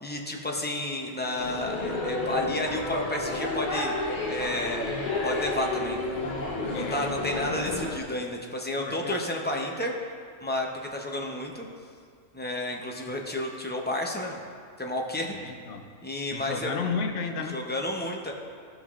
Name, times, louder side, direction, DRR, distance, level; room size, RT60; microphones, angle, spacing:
voice 1, 0.0-3.9 4.3-4.9 5.2-6.2 6.7-9.9 10.4-11.7 12.3-14.4 14.8-15.3 16.0-16.8 17.5-18.3, left 1 dB, 15° left, 0 dB, 0.4 m, -31 dB
sound 1, 1.4-8.0, left 2 dB, 45° left, 1.0 m, -31 dB
voice 2, 6.7-7.1 8.8-9.2 15.2-15.9 16.3-17.6, left 5 dB, 70° left, 5 dB, 0.9 m, -33 dB
16.5 x 5.6 x 2.4 m, 2.1 s
omnidirectional pair, 1.3 m